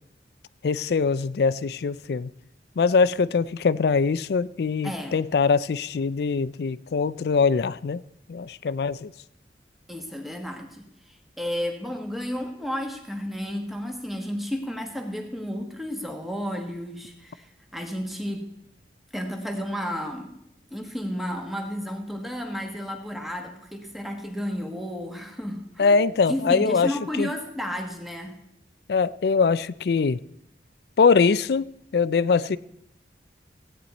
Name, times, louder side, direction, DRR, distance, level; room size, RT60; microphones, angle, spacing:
voice 1, 0.6-2.3 2.8-8.0 8.3-9.1 25.8-26.9 27.2-27.3 28.9-30.2 31.0-32.6, left 5 dB, 60° left, 0.4 m, -22 dB
voice 2, 4.8-5.2 9.9-18.5 19.1-20.4 20.7-26.0 26.3-28.4, equal, ahead, 1.3 m, -32 dB
16.0 x 9.3 x 4.1 m
head